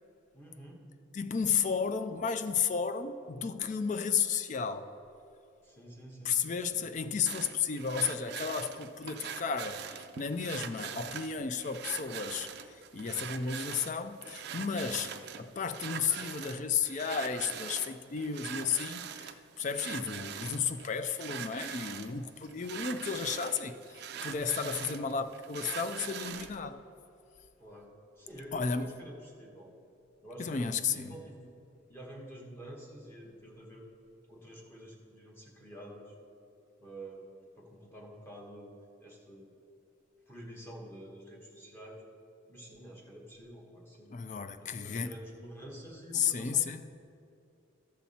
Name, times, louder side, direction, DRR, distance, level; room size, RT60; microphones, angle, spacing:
voice 1, 0.3-0.8 5.6-6.9 25.0-25.1 27.6-29.7 30.2-31.5 31.9-33.9 34.3-36.1 36.8-38.7 39.0-39.5 40.3-42.1 42.5-44.1 44.6-46.7, right 1 dB, 10° left, 1.2 m, -48 dB
voice 2, 1.1-4.9 6.2-26.8 28.5-28.9 30.4-31.2 44.1-45.1 46.1-46.9, left 6 dB, 35° left, 0.4 m, -33 dB
sound 1, 7.3-26.6, right 8 dB, 50° right, 0.4 m, -43 dB
14.0 x 5.8 x 4.2 m
head